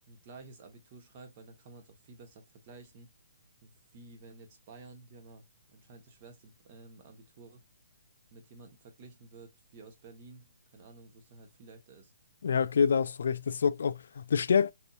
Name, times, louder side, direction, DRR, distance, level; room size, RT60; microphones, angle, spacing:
voice 1, 0.1-3.1 3.6-7.6 8.3-12.1, right 3 dB, 35° right, 1.1 m, -52 dB
voice 2, 12.4-14.7, left 6 dB, 65° left, 0.3 m, -27 dB
4.2 x 2.6 x 2.3 m
hypercardioid pair, 155°, 0 cm